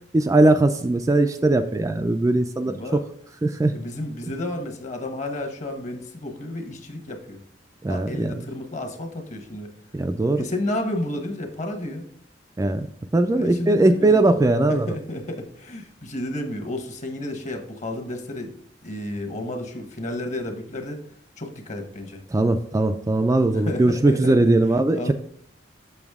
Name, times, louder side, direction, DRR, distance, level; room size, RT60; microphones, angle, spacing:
voice 1, 0.1-3.0 3.4-3.7 7.8-8.5 9.9-10.5 12.6-12.9 13.1-14.9 22.3-25.1, right 2 dB, 15° right, 7 dB, 0.3 m, -20 dB
voice 2, 2.6-3.0 3.7-7.4 7.9-9.7 10.3-12.1 13.3-14.2 14.7-18.5 18.8-21.0 21.4-22.2 23.5-24.5 24.9-25.1, left 1 dB, 40° left, 5 dB, 1.2 m, -32 dB
7.1 x 5.9 x 3.5 m, 0.65 s
head